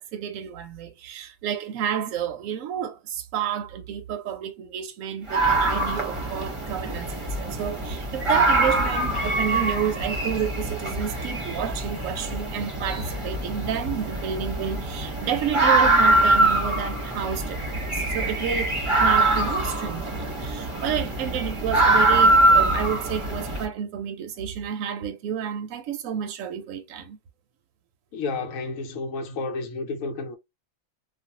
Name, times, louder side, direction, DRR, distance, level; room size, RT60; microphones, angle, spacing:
voice 1, 0.0-27.2, right 8 dB, 75° right, 1.0 m, -30 dB
sound 1, 5.3-23.6, right 2 dB, 25° right, 0.8 m, -23 dB
voice 2, 28.1-30.4, left 3 dB, 75° left, 1.0 m, -31 dB
2.5 x 2.3 x 2.8 m
omnidirectional pair, 1.4 m